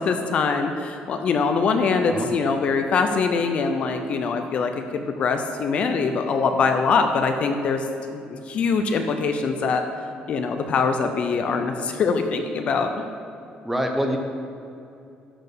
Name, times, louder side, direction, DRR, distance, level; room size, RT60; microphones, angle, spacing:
voice 1, 0.0-7.8 8.1-9.8 10.3-13.0, left 5 dB, 40° left, 6 dB, 0.6 m, -23 dB
voice 2, 13.6-14.2, equal, 5° right, 3 dB, 0.8 m, -25 dB
12.0 x 4.3 x 6.8 m, 2.6 s
cardioid pair, 170°, 3 cm